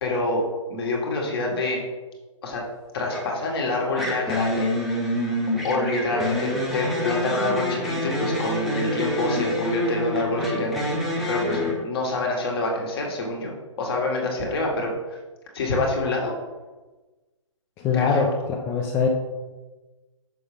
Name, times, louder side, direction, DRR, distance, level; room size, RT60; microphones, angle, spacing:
voice 1, 0.0-1.8 2.4-2.6 2.9-4.7 5.6-10.9 11.3-13.5 13.8-15.2 15.5-16.3 17.9-18.3, left 2 dB, 50° left, 0 dB, 1.7 m, -26 dB
sound 1, 3.1-3.4 4.0-11.7, left 1 dB, ahead, 0.9 m, -27 dB
voice 2, 17.8-19.1, left 5 dB, 15° left, 0 dB, 0.5 m, -23 dB
6.3 x 5.5 x 3.3 m, 1.2 s
figure-of-eight pair, 130°, 17 cm